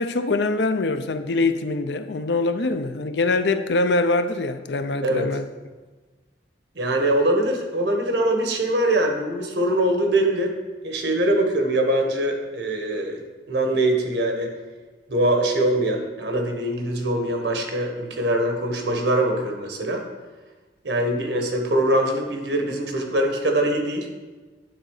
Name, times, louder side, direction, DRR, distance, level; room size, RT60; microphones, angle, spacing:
voice 1, 0.0-5.5, left 3 dB, 80° left, 0.6 m, -23 dB
voice 2, 5.0-5.4 6.7-10.5 10.8-13.2 13.5-14.5 15.1-20.0 20.8-24.1, right 1 dB, 85° right, 1.4 m, -23 dB
9.8 x 3.9 x 6.5 m
head